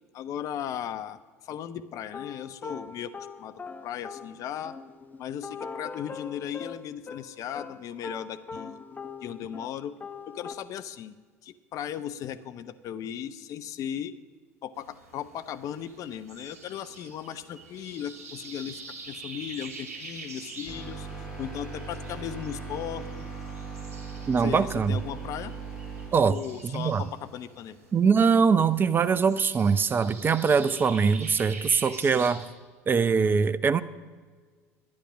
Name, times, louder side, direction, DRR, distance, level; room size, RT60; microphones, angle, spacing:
voice 1, 0.1-3.1 3.4-3.5 3.8-4.7 5.2-8.8 9.2-9.9 10.3-11.2 11.4-14.1 14.6-18.8 19.1-21.1 21.4-23.2 24.4-25.5 26.3-27.8, left 9 dB, 45° left, 12 dB, 0.6 m, -36 dB
sound 1, 2.1-9.7 10.0-10.5, left 5 dB, 20° left, 0.9 m, -42 dB
sound 2, 14.8-32.5, right 3 dB, 70° right, 2.8 m, -46 dB
sound 3, 20.7-26.1, right 4 dB, 10° right, 4.8 m, -39 dB
voice 2, 24.3-25.0 26.1-26.4 26.6-27.0 27.9-32.4 32.9-33.8, right 5 dB, 25° right, 15 dB, 0.6 m, -22 dB
12.0 x 9.9 x 6.2 m, 1.5 s
figure-of-eight pair, 70°, 8 cm